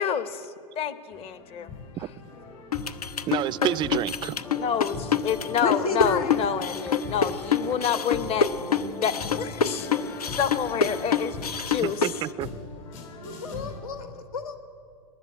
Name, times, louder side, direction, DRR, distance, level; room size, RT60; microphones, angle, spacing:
voice 1, 0.0-1.7 4.6-8.5 9.0-9.9 10.4-11.4 11.7-12.0, left 8 dB, 30° left, 0.9 m, -28 dB
sound 1, 1.1-13.8, left 3 dB, 60° left, 3.9 m, -41 dB
sound 2, 2.7-12.2, left 6 dB, 90° left, 0.7 m, -26 dB
voice 2, 3.3-4.4 11.6-12.5, right 14 dB, 25° right, 0.3 m, -29 dB
sound 3, 4.4-11.3, left 3 dB, 10° left, 0.6 m, -41 dB
voice 3, 5.6-6.4 13.2-14.6, left 4 dB, 75° left, 1.3 m, -30 dB
19.0 x 7.5 x 9.9 m
hypercardioid pair, 100°, 19 cm